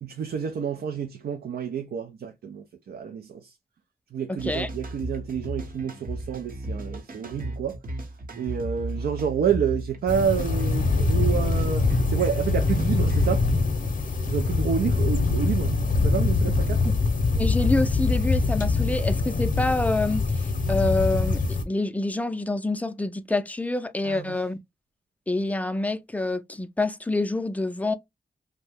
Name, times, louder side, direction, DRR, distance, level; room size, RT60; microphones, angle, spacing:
voice 1, 0.0-3.5 4.1-7.8 8.4-11.8 12.1-13.4 14.3-15.8 16.0-16.8 24.0-24.4, right 7 dB, 80° right, 0.4 m, -29 dB
voice 2, 4.3-4.7 16.8-16.9 17.3-20.3 20.7-24.6 25.3-27.9, left 2 dB, 10° left, 0.4 m, -27 dB
sound 1, 4.4-13.5, right 1 dB, 65° right, 0.9 m, -35 dB
sound 2, 10.1-21.6, left 3 dB, 55° left, 0.6 m, -23 dB
2.7 x 2.1 x 3.3 m
cardioid pair, 65°, 16 cm